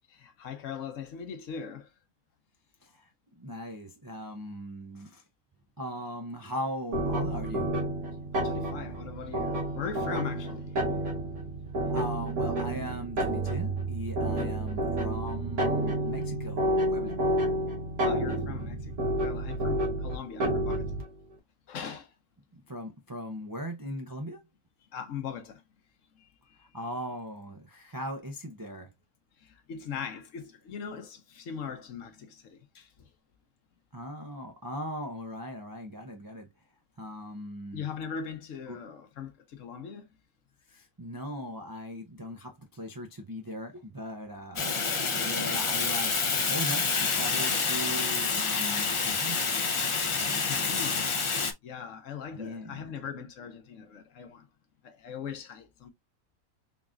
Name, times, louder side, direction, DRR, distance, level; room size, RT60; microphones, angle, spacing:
voice 1, 0.1-1.9 8.3-10.8 14.2-14.5 17.4-17.5 18.0-18.9 19.2-20.9 21.7-22.1 24.9-25.6 26.2-26.6 29.4-33.1 37.7-40.1 50.4-51.1 51.6-54.5 54.8-55.9, left 7 dB, 65° left, 1.1 m, -40 dB
voice 2, 2.8-5.2 5.8-7.7 11.9-17.2 22.5-24.4 26.6-28.9 33.9-36.5 37.0-37.8 38.7-38.8 40.7-44.7 45.0-49.4 50.1-50.8 52.4-52.9, equal, 35° right, 0.3 m, -39 dB
sound 1, 6.9-21.1, right 1 dB, 90° right, 1.7 m, -30 dB
Fire, 44.6-51.5, left 4 dB, 45° left, 0.4 m, -28 dB
3.9 x 3.7 x 2.3 m
omnidirectional pair, 1.5 m